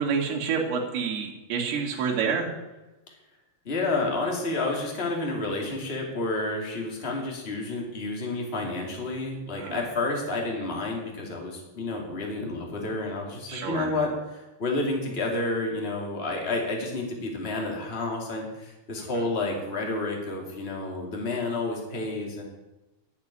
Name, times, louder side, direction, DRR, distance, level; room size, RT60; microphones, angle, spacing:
voice 1, 0.0-2.5 9.6-9.8 13.5-13.9, right 6 dB, 60° right, 0 dB, 3.9 m, -28 dB
voice 2, 3.6-22.4, left 2 dB, 20° left, 0 dB, 1.6 m, -30 dB
12.5 x 7.4 x 9.9 m, 1.0 s
omnidirectional pair, 5.5 m